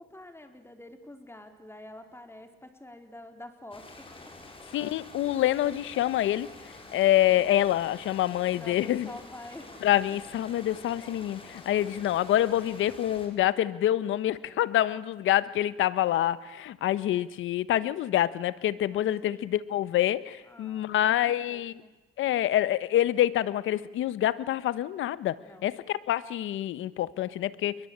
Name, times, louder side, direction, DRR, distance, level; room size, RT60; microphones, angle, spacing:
voice 1, 0.0-4.1 8.6-9.8 14.4-14.6 18.9-19.7 20.4-22.0 25.4-25.7, left 1 dB, 10° left, 6 dB, 4.3 m, -48 dB
sound 1, 3.7-13.3, left 2 dB, 25° left, 7.2 m, -48 dB
voice 2, 4.7-6.5 6.9-9.1 9.8-21.7 22.2-27.8, left 13 dB, 80° left, 15 dB, 1.3 m, -26 dB
29.0 x 22.5 x 8.9 m, 1.1 s
cardioid pair, 90°, 20 cm